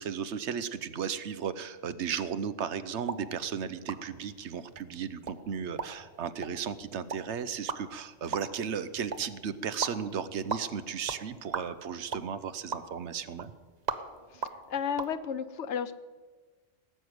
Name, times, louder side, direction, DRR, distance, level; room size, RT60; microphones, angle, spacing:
voice 1, 0.0-13.5, right 7 dB, 70° right, 13 dB, 1.0 m, -35 dB
sound 1, 3.0-15.1, right 5 dB, 40° right, 0.8 m, -41 dB
voice 2, 14.3-15.9, left 7 dB, 70° left, 12 dB, 1.0 m, -33 dB
18.5 x 6.5 x 9.2 m, 1.4 s
omnidirectional pair, 1.3 m